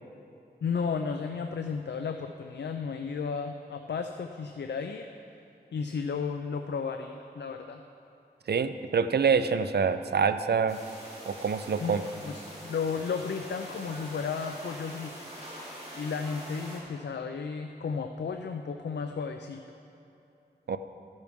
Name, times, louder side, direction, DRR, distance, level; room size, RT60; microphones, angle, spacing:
voice 1, 0.6-5.1 5.7-7.8 11.8-15.1 15.9-19.6, left 5 dB, 85° left, 5 dB, 0.4 m, -33 dB
voice 2, 8.5-10.8 11.3-12.1 20.7-20.8, right 6 dB, 70° right, 11 dB, 0.5 m, -26 dB
sound 1, 10.7-16.8, equal, 40° right, 2.9 m, -44 dB
13.5 x 10.5 x 3.6 m, 2.7 s
wide cardioid pair, 60°, 17 cm